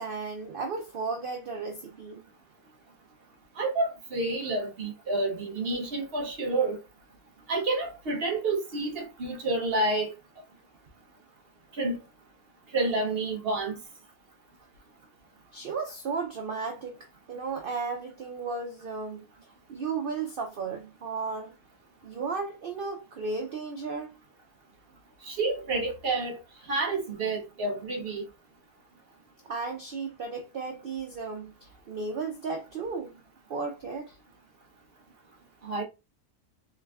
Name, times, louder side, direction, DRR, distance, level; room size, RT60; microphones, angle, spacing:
voice 1, 0.0-2.2 15.5-19.2 19.7-21.5 22.0-24.1 29.4-33.2 33.5-34.2, right 4 dB, 85° right, 0.4 m, -34 dB
voice 2, 3.6-6.8 7.5-10.1 11.8-12.0 12.7-13.8 25.2-26.4 26.7-28.2 35.6-35.8, right 2 dB, 55° right, 0.7 m, -29 dB
3.4 x 3.2 x 2.3 m
omnidirectional pair, 1.6 m